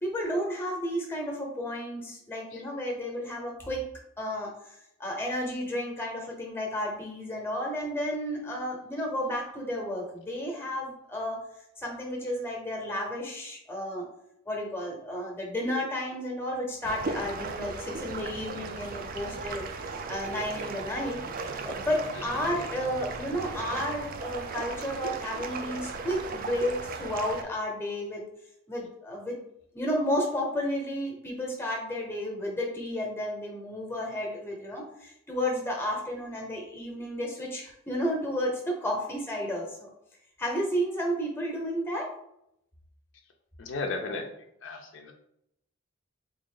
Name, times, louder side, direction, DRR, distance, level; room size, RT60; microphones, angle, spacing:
voice 1, 0.0-3.8 4.2-11.4 11.8-14.1 14.5-21.2 21.6-28.2 28.7-29.4 29.7-39.9 40.4-42.1, equal, 10° left, 0 dB, 0.7 m, -32 dB
sound 1, 16.8-27.4, right 4 dB, 45° right, 0.3 m, -37 dB
voice 2, 43.6-44.2 44.6-45.1, left 3 dB, 65° left, 4 dB, 0.5 m, -35 dB
3.5 x 2.5 x 3.7 m, 0.78 s
head